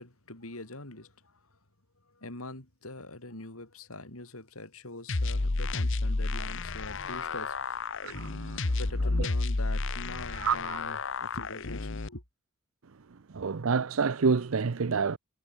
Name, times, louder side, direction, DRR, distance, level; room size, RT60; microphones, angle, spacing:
voice 1, 0.0-1.6 2.0-7.8 8.8-12.2, left 2 dB, 85° left, 4.6 m, -44 dB
sound 1, 5.1-12.1, left 3 dB, 60° left, 1.1 m, -31 dB
voice 2, 8.0-8.8 9.2-9.3 10.3-10.8 13.1-15.2, right 5 dB, 70° right, 0.6 m, -29 dB
head